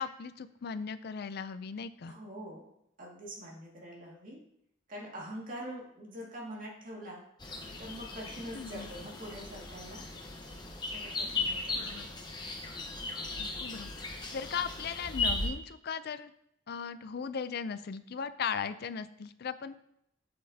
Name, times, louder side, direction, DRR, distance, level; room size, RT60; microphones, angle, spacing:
voice 1, 0.0-2.1 8.5-8.9 11.7-12.1 13.4-16.3 16.7-19.8, left 6 dB, 55° left, 13 dB, 0.4 m, -38 dB
voice 2, 2.1-2.7 3.0-4.4 4.9-7.2 7.8-10.0 10.9-11.8, equal, 45° right, -3 dB, 2.1 m, -44 dB
sound 1, 7.4-15.5, left 3 dB, 20° left, 1.0 m, -37 dB
8.1 x 7.8 x 2.8 m, 0.76 s
head